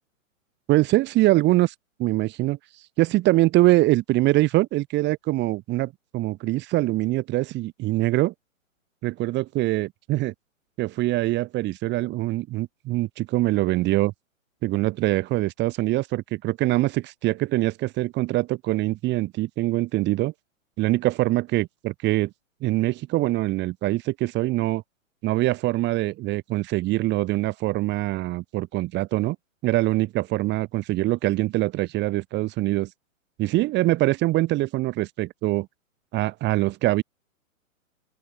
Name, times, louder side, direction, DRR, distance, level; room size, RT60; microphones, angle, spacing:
voice 1, 0.7-1.7 2.0-2.6 3.0-8.3 9.0-10.3 10.8-14.1 14.6-20.3 20.8-22.3 22.6-24.8 25.2-29.4 29.6-32.9 33.4-35.7 36.1-37.0, right 18 dB, 25° right, 7.1 m, -23 dB
open air
hypercardioid pair, 135°, 41 cm